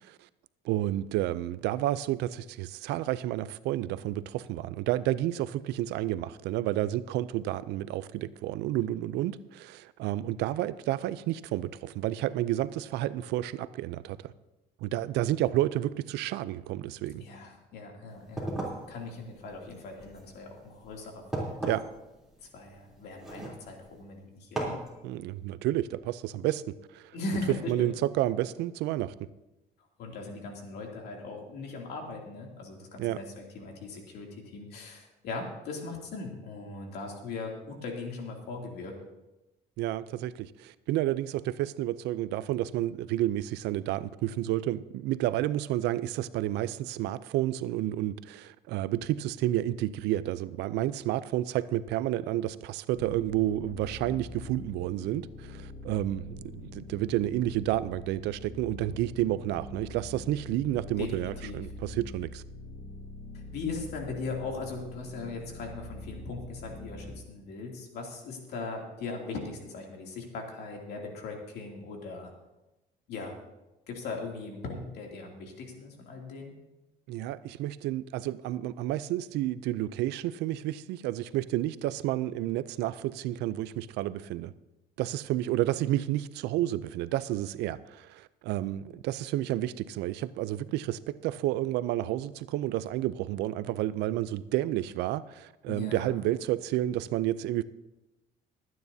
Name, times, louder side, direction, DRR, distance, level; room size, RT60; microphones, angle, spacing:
voice 1, 0.6-14.3 14.8-17.2 21.6-21.8 25.0-27.0 27.7-29.1 33.0-33.2 39.8-62.4 77.1-84.5 85.0-97.6, right 14 dB, 85° right, 16 dB, 0.5 m, -30 dB
voice 2, 17.2-18.5 18.9-21.5 22.5-24.8 27.1-27.9 30.0-39.0 61.0-61.6 63.3-72.3 73.1-73.4 73.9-76.5 95.7-96.1, left 3 dB, 75° left, 0 dB, 2.7 m, -39 dB
sound 1, 18.1-24.0 24.6-24.9, right 2 dB, ahead, 3.3 m, -38 dB
sound 2, 52.9-67.2, left 2 dB, 60° left, 1.5 m, -44 dB
22.5 x 9.5 x 2.7 m, 1.0 s
cardioid pair, 110°, 17 cm